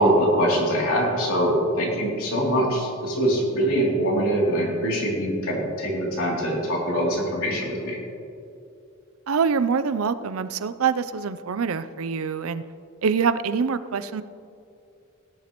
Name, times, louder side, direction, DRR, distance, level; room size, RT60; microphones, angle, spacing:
voice 1, 0.0-8.0, right 1 dB, 80° left, -3 dB, 2.9 m, -23 dB
voice 2, 9.3-12.6 13.0-14.2, right 6 dB, 75° right, 13 dB, 0.5 m, -25 dB
17.5 x 10.5 x 3.0 m, 2.6 s
head